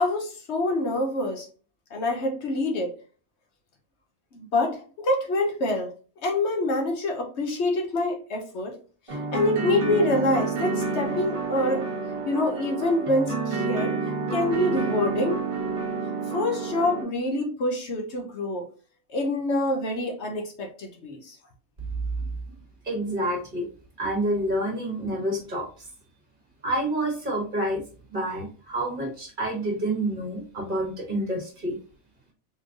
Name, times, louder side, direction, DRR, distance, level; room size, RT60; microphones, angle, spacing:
voice 1, 0.0-1.5 1.9-2.9 4.3-5.9 6.2-8.8 9.3-11.9 12.3-13.9 14.3-15.4 16.3-18.7 19.1-21.4, left 2 dB, 65° left, 1.1 m, -26 dB
sound 1, 9.1-17.0, right 4 dB, 30° right, 1.1 m, -29 dB
voice 2, 22.8-23.7 24.0-25.7 26.6-27.8 28.1-31.8, right 1 dB, 45° right, 1.6 m, -28 dB
4.3 x 3.2 x 2.5 m
omnidirectional pair, 1.2 m